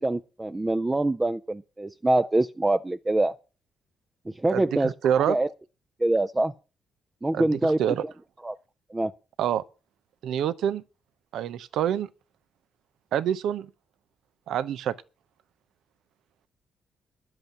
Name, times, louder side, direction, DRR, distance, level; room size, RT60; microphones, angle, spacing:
voice 1, 0.0-3.3 4.3-4.9 5.3-5.5 6.0-6.5 7.2-7.8 8.4-8.6 8.9-9.1, right 2 dB, 15° right, 0.5 m, -24 dB
voice 2, 4.5-5.4 7.3-8.0 9.4-9.6 10.2-10.8 11.3-12.1 13.1-13.7 14.5-14.9, right 9 dB, 75° right, 0.7 m, -26 dB
11.0 x 7.8 x 7.2 m
cardioid pair, 90°, 0 cm